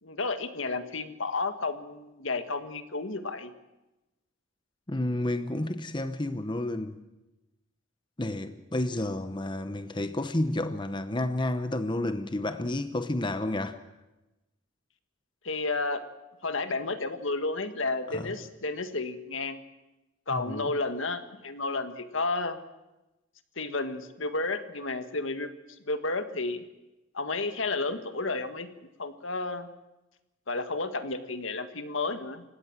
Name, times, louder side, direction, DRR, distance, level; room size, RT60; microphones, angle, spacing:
voice 1, 0.0-3.5 15.4-16.1 16.4-19.6 20.3-22.6 23.6-25.5 25.8-26.6 27.1-28.7 29.0-29.7 30.5-32.4, left 3 dB, 70° left, 9 dB, 1.8 m, -32 dB
voice 2, 4.9-6.9 8.2-13.8 18.1-18.3 20.3-20.7, left 1 dB, 25° left, 10 dB, 0.9 m, -30 dB
29.5 x 16.5 x 7.4 m, 1.0 s
head